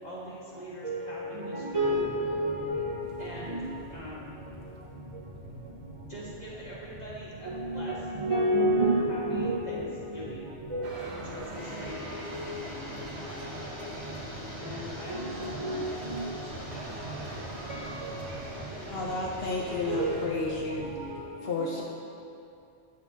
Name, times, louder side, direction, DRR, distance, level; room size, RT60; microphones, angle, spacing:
voice 1, 0.0-2.0 3.2-3.6 3.9-4.3 5.7-5.8 6.1-8.1 9.1-9.9 10.1-10.5 11.0-12.0 14.6-15.8, equal, 35° left, -7 dB, 1.7 m, -43 dB
voice 2, 0.8-3.0 3.5-3.6 7.5-9.9 10.1-10.3 10.7-11.0 12.3-12.5 15.1-16.2 17.7-18.2 19.9-21.6, right 1 dB, 40° right, -4 dB, 0.5 m, -30 dB
sound 1, 1.7-21.2, right 1 dB, 85° right, 1.4 m, -46 dB
sound 2, 10.8-20.3, right 2 dB, 70° right, 1.2 m, -42 dB
sound 3, 11.5-20.2, left 2 dB, 90° left, 2.2 m, -44 dB
voice 3, 18.9-20.9 21.4-21.8, left 3 dB, 65° left, -2 dB, 0.8 m, -32 dB
8.5 x 6.2 x 3.6 m, 2.7 s
omnidirectional pair, 1.2 m